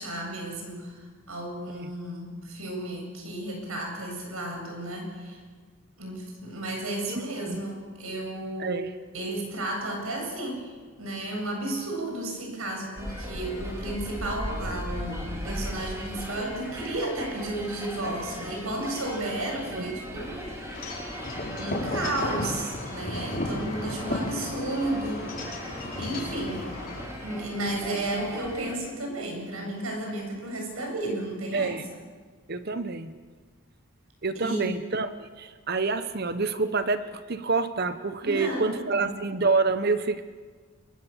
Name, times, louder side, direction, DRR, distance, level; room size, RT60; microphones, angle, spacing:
voice 1, 0.0-5.4 6.0-8.8 9.1-20.9 21.6-25.3 26.0-26.7 27.2-31.8 34.3-34.7 38.2-39.1, right 1 dB, 80° right, 2 dB, 8.0 m, -33 dB
voice 2, 7.0-7.6 8.6-8.9 19.7-20.0 31.5-31.8 32.5-33.1 34.2-40.3, right 4 dB, 45° right, 11 dB, 0.9 m, -28 dB
sound 1, 13.0-28.7, equal, 15° right, 3.9 m, -38 dB
Wind chime / Wind, 20.7-27.0, left 1 dB, 40° left, 5.2 m, -34 dB
29.5 x 22.5 x 7.3 m, 1.5 s
head